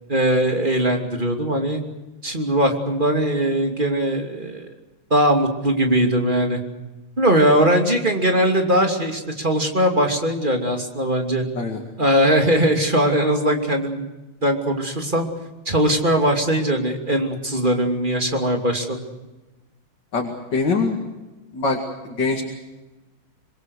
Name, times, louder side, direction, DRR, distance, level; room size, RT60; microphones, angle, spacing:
voice 1, 0.1-1.8 2.2-4.7 5.1-6.6 7.2-11.4 12.0-14.0 14.4-15.3 15.7-19.0, right 1 dB, 25° right, 4 dB, 2.9 m, -20 dB
voice 2, 20.1-21.0 21.5-21.8 22.0-22.4, left 4 dB, 60° left, 1 dB, 3.1 m, -23 dB
26.0 x 22.0 x 6.5 m, 1.1 s
omnidirectional pair, 2.2 m